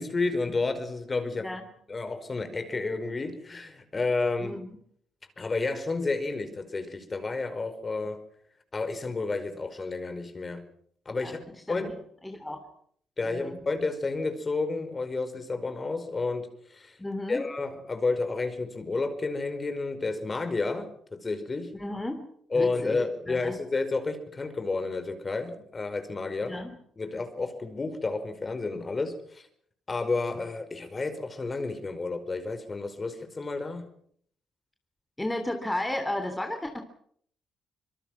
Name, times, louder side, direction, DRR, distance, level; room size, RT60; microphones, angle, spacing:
voice 1, 0.0-1.5 1.9-4.6 5.4-8.2 8.7-10.6 11.0-11.4 11.7-12.0 13.2-16.9 17.3-21.7 22.5-26.6 27.0-29.4 29.9-33.9, left 3 dB, 35° left, 9 dB, 5.0 m, -31 dB
voice 2, 4.4-4.8 11.2-11.4 11.7-12.0 12.2-12.6 13.2-13.6 17.0-17.4 21.7-22.2 22.5-23.0 23.3-23.6 26.4-26.7 35.2-36.8, left 1 dB, 15° left, 6 dB, 3.3 m, -33 dB
25.5 x 22.5 x 6.1 m, 0.64 s
hypercardioid pair, 50°, 0 cm